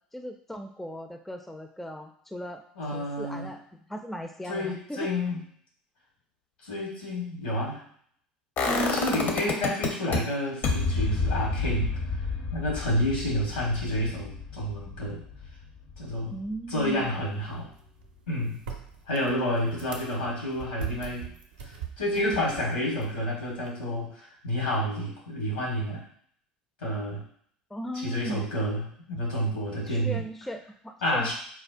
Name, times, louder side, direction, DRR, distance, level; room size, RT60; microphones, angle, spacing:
voice 1, 0.1-2.7 2.9-3.6 3.9-5.1 16.3-17.2 27.7-28.4 29.9-31.3, equal, 5° left, 5 dB, 0.3 m, -37 dB
voice 2, 2.8-3.5 4.5-5.4 6.6-7.8 8.6-12.0 12.5-15.2 16.0-16.3 16.7-17.7 18.3-18.6 19.1-21.3 21.7-26.0 26.8-27.2 27.9-30.2 31.0-31.3, equal, 85° left, -4 dB, 1.4 m, -29 dB
sound 1, 8.6-10.2 10.6-16.5 16.8-16.9, left 4 dB, 50° left, 0.6 m, -29 dB
sound 2, 16.7-23.7, right 7 dB, 75° right, 0.5 m, -43 dB
4.3 x 2.2 x 2.4 m, 0.63 s
hypercardioid pair, 70°, 4 cm